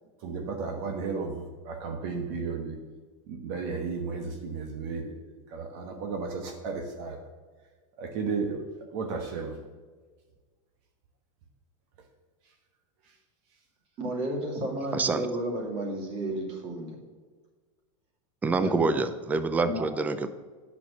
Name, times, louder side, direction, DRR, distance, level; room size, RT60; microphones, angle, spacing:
voice 1, 0.2-2.8 3.3-5.2 5.5-7.2 8.0-8.6 8.9-9.6, right 4 dB, 55° right, 4 dB, 1.3 m, -33 dB
voice 2, 14.0-17.0 18.6-18.9 19.6-19.9, right 1 dB, 35° right, 0 dB, 2.6 m, -32 dB
voice 3, 14.9-15.3 18.4-20.3, right 3 dB, 10° right, 11 dB, 0.4 m, -26 dB
9.0 x 6.0 x 6.9 m, 1.4 s
supercardioid pair, 155°, 17 cm